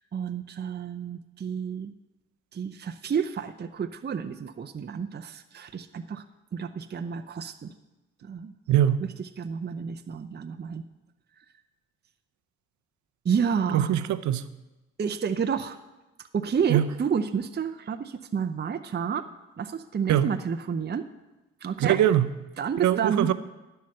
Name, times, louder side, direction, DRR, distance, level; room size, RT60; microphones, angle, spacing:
voice 1, 0.0-1.9 2.5-6.2 6.5-7.7 8.2-8.5 9.0-10.8 13.2-13.9 15.0-15.8 16.3-19.2 19.6-21.1 21.6-22.0 22.6-23.3, right 7 dB, 35° right, 8 dB, 0.7 m, -30 dB
voice 2, 8.7-9.0 13.7-14.5 16.7-16.8 20.1-20.3 21.8-22.3 22.8-23.3, right 11 dB, 65° right, 12 dB, 0.7 m, -22 dB
11.5 x 5.8 x 7.7 m, 1.1 s
hypercardioid pair, 50°, 31 cm